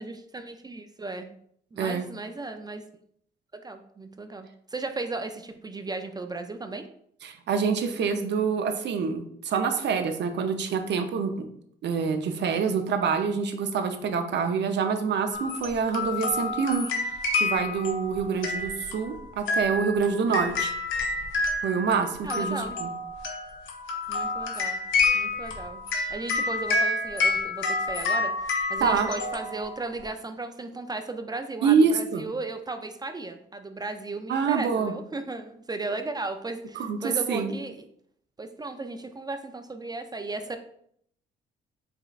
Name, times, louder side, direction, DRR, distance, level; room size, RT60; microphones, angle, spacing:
voice 1, 0.0-1.4 1.7-2.8 3.5-6.9 22.2-22.8 24.1-24.8 25.1-25.8 26.1-37.8 38.4-40.6, right 3 dB, 20° right, 7 dB, 0.4 m, -35 dB
voice 2, 1.8-2.1 7.2-11.5 11.8-16.9 17.4-20.7 21.6-22.9 28.8-29.1 31.6-32.2 34.3-34.9 36.9-37.5, right 5 dB, 60° right, 6 dB, 0.6 m, -26 dB
sound 1, 15.3-30.0, left 3 dB, 80° left, 0.8 m, -29 dB
5.0 x 3.6 x 2.4 m, 0.67 s
cardioid pair, 90°, 20 cm